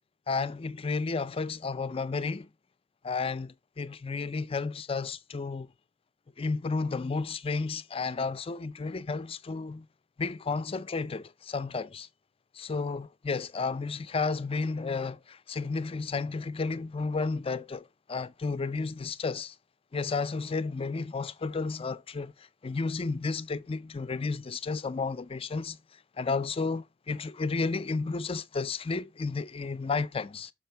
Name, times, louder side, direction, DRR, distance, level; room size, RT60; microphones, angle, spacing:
voice 1, 0.3-2.5 3.0-5.7 6.4-9.9 10.2-12.1 12.5-19.5 19.9-25.7 26.2-30.5, left 4 dB, 30° left, 0.4 m, -32 dB
6.0 x 5.6 x 4.4 m
head